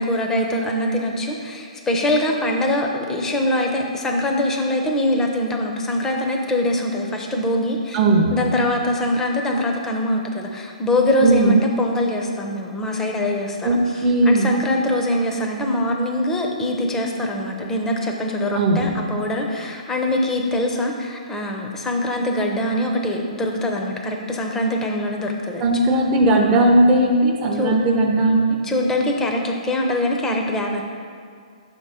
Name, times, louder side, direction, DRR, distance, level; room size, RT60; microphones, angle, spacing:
voice 1, 0.0-8.0 8.3-13.8 14.2-25.6 27.6-27.7 28.6-30.8, left 1 dB, 10° left, 1 dB, 0.7 m, -23 dB
voice 2, 7.9-8.4 11.2-11.6 13.6-14.6 18.5-18.9 25.6-28.5, right 2 dB, 25° right, -1 dB, 0.6 m, -17 dB
5.7 x 3.7 x 5.6 m, 2.2 s
hypercardioid pair, 130°, 4 cm